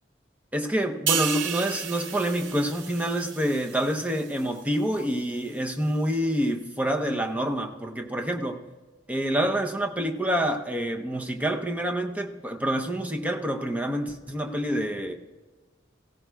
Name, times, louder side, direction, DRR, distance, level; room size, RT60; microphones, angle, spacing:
voice 1, 0.5-8.6 9.1-15.1, equal, 10° right, 3 dB, 0.7 m, -27 dB
sound 1, 1.1-4.6 5.0-5.2, right 8 dB, 80° right, 0.6 m, -32 dB
17.5 x 16.5 x 2.3 m, 1.3 s
head